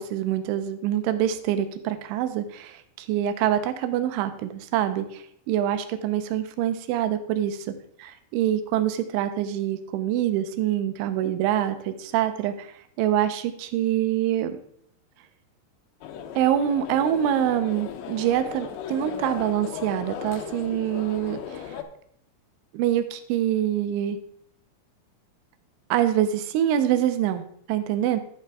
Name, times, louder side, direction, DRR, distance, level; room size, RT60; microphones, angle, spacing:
voice 1, 0.0-14.6 16.4-21.8 22.7-24.2 25.9-28.2, right 11 dB, 85° right, 9 dB, 3.1 m, -25 dB
sound 1, 16.0-21.8, left 8 dB, 80° left, 2.7 m, -37 dB
11.0 x 6.6 x 3.6 m, 0.66 s
omnidirectional pair, 5.6 m